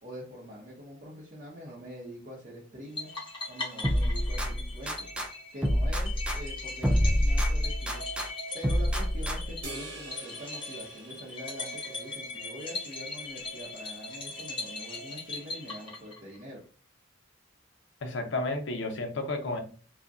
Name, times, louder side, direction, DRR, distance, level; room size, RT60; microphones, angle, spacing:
voice 1, 0.0-3.1 3.5-5.0 5.5-8.0 8.5-16.6, equal, 40° right, 0.7 m, -44 dB
sound 1, 3.0-16.4, left 3 dB, 25° left, 0.9 m, -40 dB
sound 2, 3.8-5.3 5.6-8.3 8.6-9.7, equal, 5° right, 0.3 m, -27 dB
sound 3, 9.6-12.3, right 2 dB, 75° right, 1.2 m, -45 dB
voice 2, 18.0-19.6, left 2 dB, 65° left, 0.6 m, -32 dB
2.5 x 2.1 x 3.4 m
head